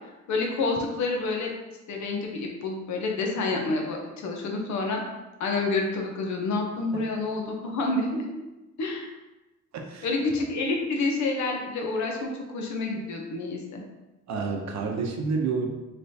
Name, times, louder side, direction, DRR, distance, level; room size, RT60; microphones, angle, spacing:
voice 1, 0.3-1.5 1.9-5.0 5.4-8.2 8.8-9.1 10.0-13.8, left 3 dB, 70° left, 1 dB, 0.8 m, -28 dB
voice 2, 9.7-10.1 14.3-15.7, right 4 dB, 65° right, 2 dB, 0.7 m, -29 dB
3.3 x 2.9 x 2.7 m, 1.1 s
cardioid pair, 90°, 30 cm